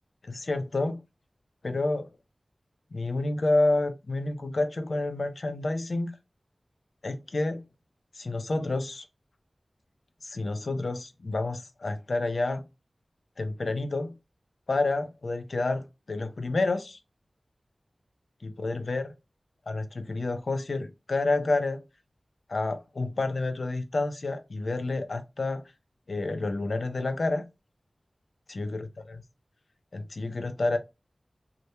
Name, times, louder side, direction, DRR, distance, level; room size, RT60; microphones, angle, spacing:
voice 1, 0.2-1.0 1.6-2.1 2.9-6.1 7.0-7.6 8.1-9.0 10.2-12.6 13.4-14.1 14.7-17.0 18.4-19.1 19.7-21.8 22.5-25.6 26.1-27.4 28.5-29.2 29.9-30.8, left 2 dB, 75° left, 0.4 m, -29 dB
2.2 x 2.1 x 2.9 m
wide cardioid pair, 65°, 0 cm